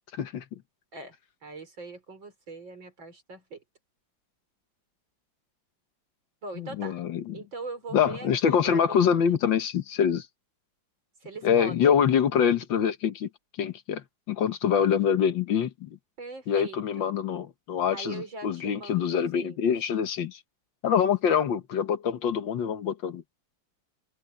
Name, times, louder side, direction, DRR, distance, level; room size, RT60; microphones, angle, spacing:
voice 1, 0.1-0.4 6.6-7.4 7.9-10.3 11.4-13.3 13.6-16.0 16.5-20.4 20.8-23.2, left 7 dB, 80° left, 2.0 m, -25 dB
voice 2, 1.4-3.6 6.4-7.0 7.3-9.4 11.2-12.0 16.2-17.1 17.9-19.6, right 3 dB, 80° right, 5.8 m, -41 dB
open air
omnidirectional pair, 2.0 m